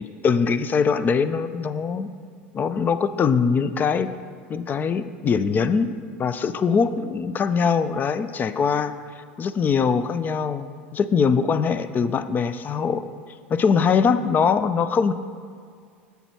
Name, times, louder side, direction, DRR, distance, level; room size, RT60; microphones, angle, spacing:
voice 1, 0.0-2.1 2.5-4.1 4.5-8.9 9.4-13.0 13.5-15.1, left 6 dB, 30° left, 13 dB, 0.4 m, -22 dB
8.1 x 7.0 x 4.5 m, 2.1 s
hypercardioid pair, 90°, 6 cm